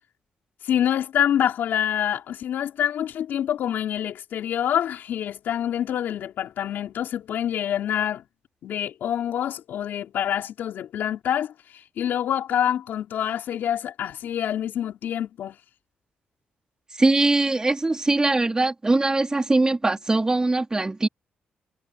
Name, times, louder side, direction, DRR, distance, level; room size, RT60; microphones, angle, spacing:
voice 1, 0.6-8.2 8.6-15.6, left 10 dB, 75° left, 4.5 m, -26 dB
voice 2, 16.9-21.1, right 2 dB, 20° right, 4.2 m, -21 dB
cardioid pair, 80°, 3 cm